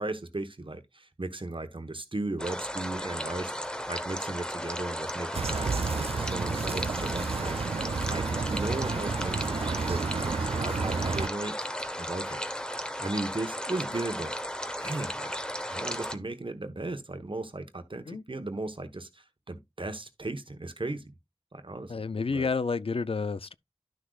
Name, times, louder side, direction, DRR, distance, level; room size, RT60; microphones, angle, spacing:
voice 1, 0.0-3.6 3.9-7.7 8.1-11.6 12.0-12.4 13.0-14.4 14.8-15.3 15.7-21.0 21.5-22.5, right 2 dB, 60° right, 1.1 m, -36 dB
sound 1, 2.4-16.2, equal, 10° left, 1.0 m, -35 dB
sound 2, 5.3-11.3, right 4 dB, 75° right, 0.4 m, -31 dB
voice 2, 21.9-23.5, left 4 dB, 65° left, 0.4 m, -30 dB
11.5 x 6.2 x 2.3 m
wide cardioid pair, 40°, 10 cm